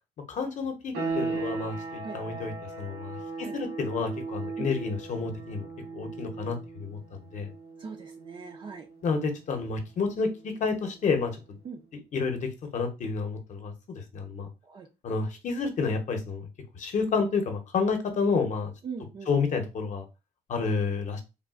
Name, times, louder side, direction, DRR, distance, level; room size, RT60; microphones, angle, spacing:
voice 1, 0.3-5.7 5.9-7.0 7.3-7.5 9.0-11.6 12.1-14.5 15.0-16.5 16.7-18.7 19.3-20.1 20.5-21.2, left 4 dB, 45° left, 5 dB, 0.8 m, -30 dB
sound 1, 0.9-11.4, right 4 dB, 80° right, 1.6 m, -38 dB
voice 2, 7.8-8.9 11.6-11.8 14.6-14.9 18.8-19.3, right 5 dB, 30° right, 3 dB, 0.4 m, -40 dB
3.4 x 2.4 x 2.3 m, 0.28 s
cardioid pair, 110°, 17 cm